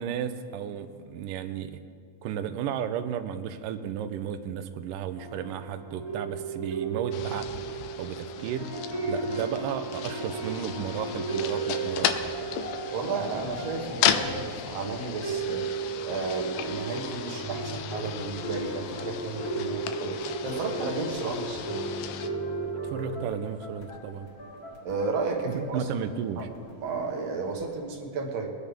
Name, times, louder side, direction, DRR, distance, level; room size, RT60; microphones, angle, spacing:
voice 1, 0.0-1.8 2.2-12.2 22.8-24.3 25.5-26.5, right 8 dB, 80° right, 8 dB, 2.1 m, -34 dB
sound 1, 5.2-23.2, right 4 dB, 15° right, 0.9 m, -35 dB
sound 2, 7.1-22.3, left 9 dB, 80° left, 2.4 m, -35 dB
voice 2, 12.9-15.7 16.1-21.6 24.8-25.9 26.4-26.5 26.8-28.5, right 4 dB, 60° right, 2 dB, 1.9 m, -33 dB
sound 3, 17.9-27.7, left 3 dB, 30° left, 1.8 m, -40 dB
23.5 x 9.6 x 3.5 m, 2.3 s
omnidirectional pair, 4.2 m